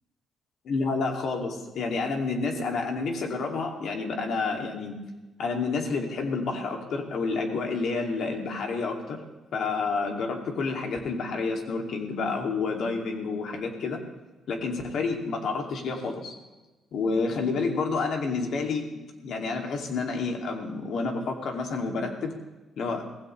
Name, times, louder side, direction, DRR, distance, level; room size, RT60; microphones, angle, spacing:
voice 1, 0.6-5.0 5.4-9.2 9.5-14.0 14.5-16.3 16.9-22.3 22.8-23.0, left 4 dB, 65° left, 2 dB, 2.5 m, -29 dB
18.5 x 15.5 x 3.2 m, 1.2 s
cardioid pair, 90°, 0 cm